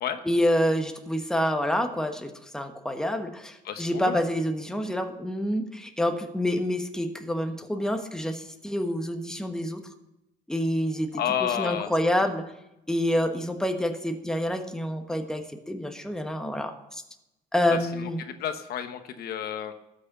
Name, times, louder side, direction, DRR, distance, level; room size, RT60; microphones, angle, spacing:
voice 1, 0.2-9.8 10.5-12.4 12.9-17.0 17.5-18.2, left 1 dB, 5° left, 5 dB, 1.2 m, -27 dB
voice 2, 3.6-4.2 11.2-11.9 17.7-19.7, left 9 dB, 65° left, 9 dB, 1.0 m, -31 dB
13.5 x 6.4 x 6.7 m, 0.89 s
cardioid pair, 110°, 17 cm